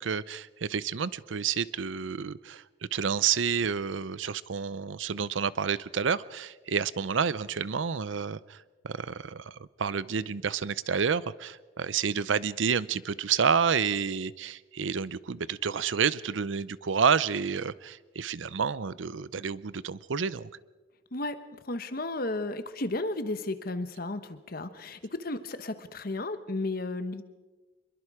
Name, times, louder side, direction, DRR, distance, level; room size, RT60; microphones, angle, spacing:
voice 1, 0.0-2.6 2.9-8.6 8.8-20.5, right 6 dB, 90° right, 18 dB, 0.6 m, -29 dB
voice 2, 21.6-27.2, left 2 dB, 50° left, 11 dB, 1.2 m, -33 dB
25.5 x 22.5 x 4.9 m, 1.2 s
head